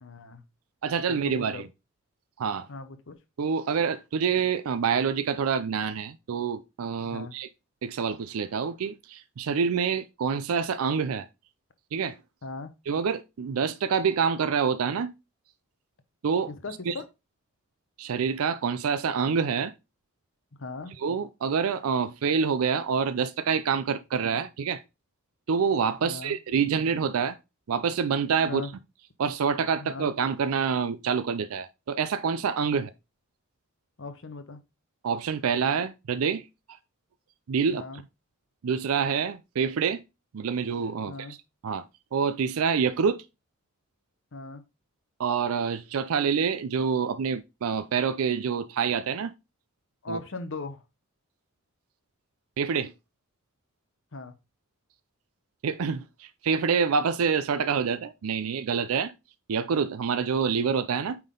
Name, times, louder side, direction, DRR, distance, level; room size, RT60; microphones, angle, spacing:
voice 1, 0.0-0.4 1.1-1.6 2.7-3.2 7.1-7.4 12.4-12.7 16.5-17.0 20.6-20.9 26.0-26.4 28.5-28.7 29.8-30.1 32.7-32.8 34.0-34.6 37.7-38.0 41.1-41.4 44.3-44.6 50.0-50.8 54.1-54.3, left 3 dB, 60° left, 0.9 m, -38 dB
voice 2, 0.8-1.7 2.4-2.7 3.4-7.5 7.8-11.3 11.9-12.2 12.9-15.1 16.2-16.5 16.9-17.0 18.0-19.7 21.0-24.8 25.5-27.4 27.7-28.6 29.2-32.9 35.0-36.5 37.5-37.8 38.6-40.0 40.3-41.4 41.6-41.8 42.1-43.2 45.2-49.3 50.1-50.2 52.6-52.9 55.6-59.1 59.5-61.2, right 6 dB, 75° right, 0.4 m, -27 dB
8.9 x 3.7 x 3.8 m
head